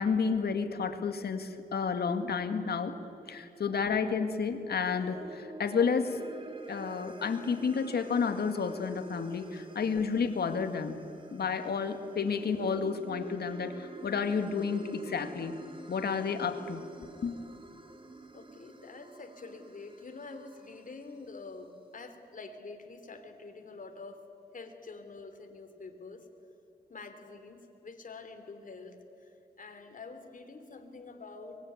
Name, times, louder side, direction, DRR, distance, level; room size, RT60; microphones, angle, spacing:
voice 1, 0.0-2.9 3.3-6.2 6.7-11.0 11.3-15.6 15.9-16.8 17.2-17.4, left 5 dB, 70° left, 7 dB, 2.1 m, -31 dB
sound 1, 4.7-21.2, right 2 dB, 30° right, 2.3 m, -49 dB
voice 2, 18.3-24.2 24.5-26.3 26.9-31.6, left 3 dB, 50° left, 6 dB, 3.3 m, -47 dB
23.5 x 21.0 x 9.6 m, 2.9 s
cardioid pair, 65°, 17 cm